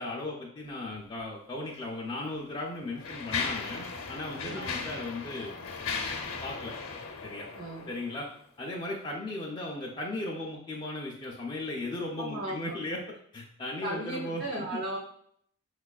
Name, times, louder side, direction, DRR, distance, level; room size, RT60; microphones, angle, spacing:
voice 1, 0.0-5.6 6.4-6.7 7.2-7.5 7.9-8.3 8.6-14.8, left 2 dB, 20° left, -3 dB, 0.3 m, -36 dB
Mechanisms, 1.7-1.8 2.5-8.3, left 4 dB, 65° left, 0.6 m, -37 dB
voice 2, 4.4-4.7 7.5-7.9 12.2-12.7 13.8-15.0, right 1 dB, 50° right, -4 dB, 0.5 m, -36 dB
5.1 x 2.3 x 2.3 m, 0.66 s
head